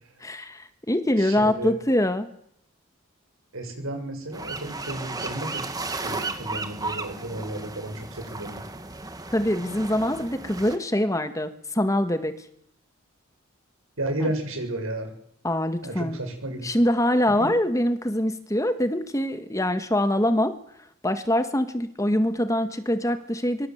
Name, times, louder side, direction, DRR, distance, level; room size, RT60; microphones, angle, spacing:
voice 1, 0.2-2.3 9.3-12.4 14.2-14.3 15.4-16.2 16.6-20.5 21.0-23.7, left 1 dB, 15° left, 9 dB, 1.7 m, -24 dB
voice 2, 1.2-1.7 3.5-5.7 6.0-8.6 9.5-9.7 14.0-15.1 15.8-16.7 17.4-17.5, right 1 dB, 85° right, 5 dB, 7.7 m, -32 dB
sound 1, 4.3-10.8, right 3 dB, 20° right, 2.0 m, -34 dB
24.5 x 24.5 x 8.1 m, 0.70 s
head